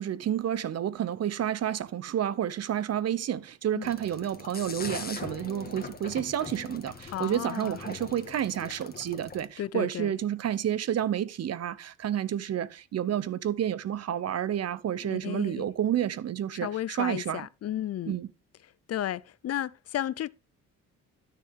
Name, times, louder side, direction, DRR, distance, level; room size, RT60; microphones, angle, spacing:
voice 1, 0.0-17.5 18.1-18.3, right 10 dB, 55° right, 0.9 m, -30 dB
sound 1, 3.8-9.5, left 5 dB, 30° left, 1.7 m, -42 dB
voice 2, 7.1-7.8 9.6-10.2 15.1-15.6 16.6-18.2 18.9-20.3, left 11 dB, 55° left, 0.6 m, -33 dB
12.5 x 6.8 x 3.7 m
cardioid pair, 90°, 30 cm